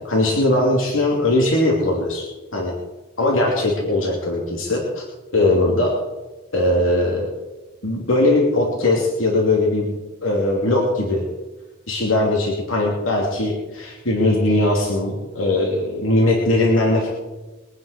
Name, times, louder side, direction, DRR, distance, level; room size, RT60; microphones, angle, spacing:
voice 1, 0.0-2.8 3.2-5.0 5.3-5.9 6.5-7.3 7.8-11.2 11.9-17.1, left 2 dB, 85° left, -2 dB, 3.0 m, -20 dB
23.0 x 9.6 x 5.0 m, 1.2 s
head